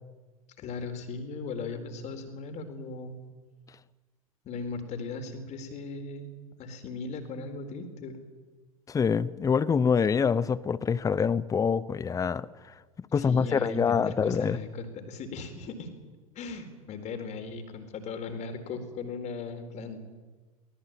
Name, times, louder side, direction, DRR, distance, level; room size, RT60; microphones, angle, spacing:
voice 1, 0.6-3.2 4.4-8.2 13.1-15.9 16.3-20.1, left 4 dB, 40° left, 7 dB, 4.3 m, -38 dB
voice 2, 8.9-12.5 13.1-14.6, left 6 dB, 20° left, 19 dB, 0.8 m, -25 dB
23.5 x 19.0 x 9.1 m, 1.3 s
figure-of-eight pair, 75°, 18 cm